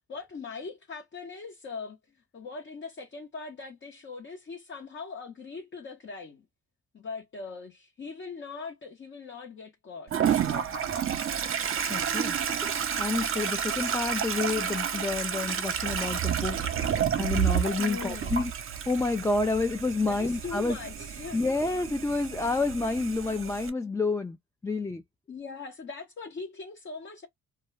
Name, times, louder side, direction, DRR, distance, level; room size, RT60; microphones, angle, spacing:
voice 1, 0.0-6.5 6.9-10.1 10.5-11.1 17.8-18.4 20.0-21.4 25.3-27.3, left 4 dB, 40° left, 0.9 m, -41 dB
Toilet flush, 10.1-23.7, right 8 dB, 45° right, 0.7 m, -30 dB
voice 2, 11.9-12.4 13.0-16.6 17.2-18.5 18.9-20.8 21.3-24.4 24.6-25.0, left 3 dB, 10° left, 0.3 m, -29 dB
2.2 x 2.2 x 3.1 m
cardioid pair, 90°, 30 cm